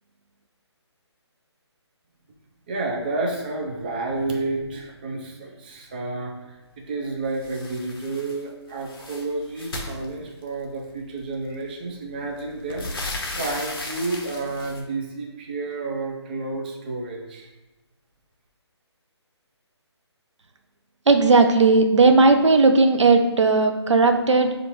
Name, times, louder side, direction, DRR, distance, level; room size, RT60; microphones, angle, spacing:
voice 1, 2.7-17.5, right 2 dB, 20° right, 0 dB, 0.4 m, -30 dB
sound 1, 7.4-8.4 8.7-10.7 11.6-11.7 12.1-14.8, left 2 dB, 50° left, 0.7 m, -35 dB
voice 2, 21.1-24.5, right 3 dB, 85° right, 6 dB, 0.5 m, -16 dB
5.2 x 2.5 x 2.9 m, 1.1 s
figure-of-eight pair, 150°, 15 cm